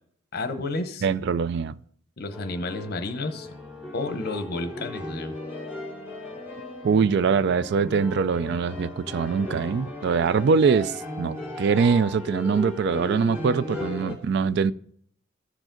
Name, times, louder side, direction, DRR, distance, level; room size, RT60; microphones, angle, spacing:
voice 1, 0.3-1.1 2.2-3.5 3.9-5.4, left 2 dB, 50° left, 0.9 m, -31 dB
voice 2, 1.0-1.8 6.8-14.7, right 5 dB, 55° right, 0.3 m, -23 dB
sound 1, 2.3-14.1, left 2 dB, 10° right, 2.6 m, -36 dB
14.5 x 4.9 x 3.8 m
head